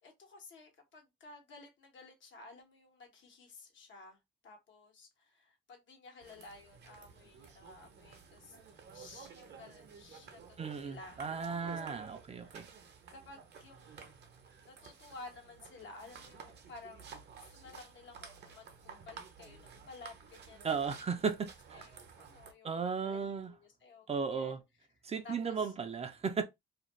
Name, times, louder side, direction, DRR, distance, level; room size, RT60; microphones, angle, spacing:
voice 1, 0.0-11.8 12.4-12.5 13.1-14.2 14.6-21.0 21.7-24.6 25.2-25.7, left 3 dB, 70° left, 1.1 m, -54 dB
sound 1, 6.2-22.5, right 6 dB, 60° right, 0.7 m, -53 dB
voice 2, 10.6-12.7 20.6-21.5 22.6-23.5 24.1-24.6 25.0-26.4, right 5 dB, 30° right, 0.4 m, -35 dB
2.5 x 2.2 x 3.0 m
cardioid pair, 90°, 20 cm